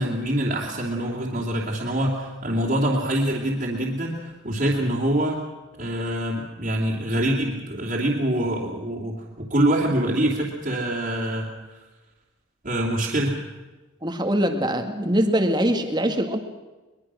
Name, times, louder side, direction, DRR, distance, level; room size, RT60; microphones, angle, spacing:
voice 1, 0.0-5.4 5.8-11.8 12.6-13.4, right 1 dB, 40° right, -3 dB, 3.0 m, -25 dB
voice 2, 14.0-16.4, equal, 20° right, 6 dB, 1.9 m, -23 dB
23.0 x 22.0 x 6.3 m, 1.2 s
head